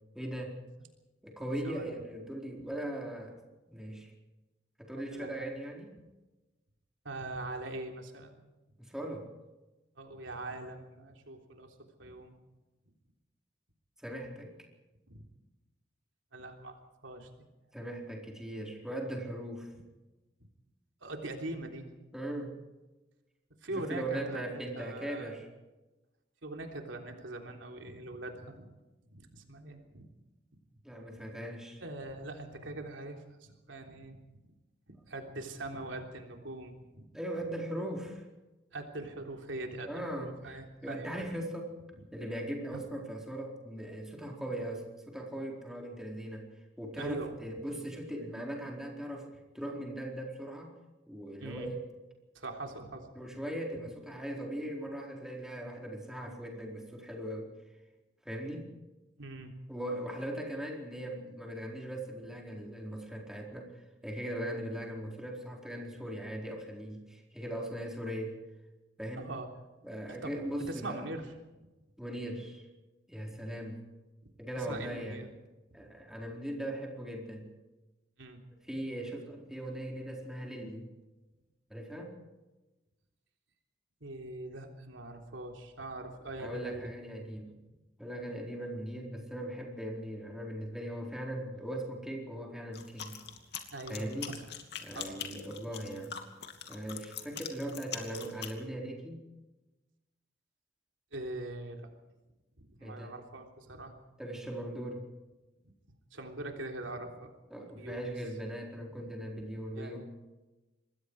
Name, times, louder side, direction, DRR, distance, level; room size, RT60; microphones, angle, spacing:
voice 1, 0.1-0.6 1.2-3.4 3.7-4.1 4.8-6.0 8.8-9.3 14.0-14.5 17.7-19.7 22.1-22.6 23.8-25.5 30.8-31.8 37.1-38.2 39.8-41.7 42.1-46.5 46.8-49.3 49.5-50.7 51.1-51.8 53.1-57.5 58.2-58.7 59.7-63.8 64.0-68.4 69.0-69.3 69.8-71.1 72.0-72.7 73.1-73.8 74.4-75.2 75.7-77.5 78.7-80.9 81.7-82.2 86.4-87.6 88.0-93.2 93.9-94.4 94.8-96.2 96.7-99.2 102.8-103.1 104.2-105.1 107.5-110.0, right 1 dB, 5° right, 0 dB, 4.3 m, -39 dB
voice 2, 1.6-2.0 4.9-5.5 7.0-8.4 10.0-11.7 12.0-12.3 15.1-15.2 16.3-16.8 17.0-17.3 21.0-21.9 23.6-25.4 26.4-28.7 29.1-30.0 31.8-34.2 35.0-37.1 38.7-41.3 42.7-42.8 47.0-47.3 51.4-51.7 52.3-53.4 59.2-59.5 69.1-69.5 70.2-71.4 74.2-75.3 75.8-75.9 78.2-78.4 84.0-86.9 93.7-94.4 94.9-95.1 101.1-101.9 102.6-103.9 106.1-107.3 107.8-108.1 109.7-110.0, right 2 dB, 80° right, 3 dB, 3.5 m, -42 dB
sound 1, 92.7-98.5, left 8 dB, 60° left, 2.7 m, -42 dB
26.0 x 21.0 x 4.9 m, 1.1 s
head